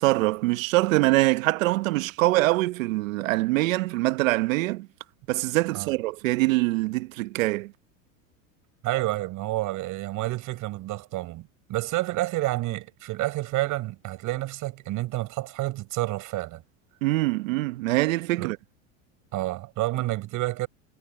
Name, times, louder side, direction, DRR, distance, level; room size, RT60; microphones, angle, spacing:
voice 1, 0.0-4.9 5.3-7.7 17.0-18.6, right 20 dB, 80° right, 1.2 m, -24 dB
voice 2, 8.8-16.6 18.4-18.5 19.3-20.7, right 18 dB, 50° right, 5.3 m, -29 dB
supercardioid pair, 115°, 39 cm